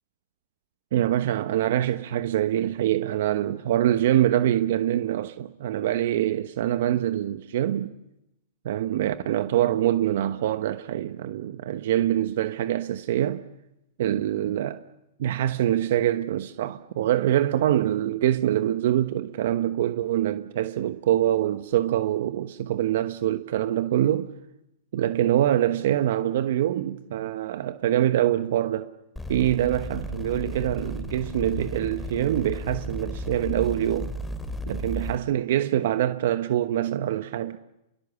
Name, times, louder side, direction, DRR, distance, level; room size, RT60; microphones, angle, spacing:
voice 1, 0.9-7.9 8.6-13.4 14.0-14.8 15.2-24.3 24.9-28.9 29.3-34.1 34.7-37.6, right 12 dB, 65° right, 1.1 m, -24 dB
sound 1, 29.2-35.2, left 1 dB, 5° left, 3.0 m, -34 dB
29.0 x 22.5 x 7.1 m
hypercardioid pair, 125°, 0 cm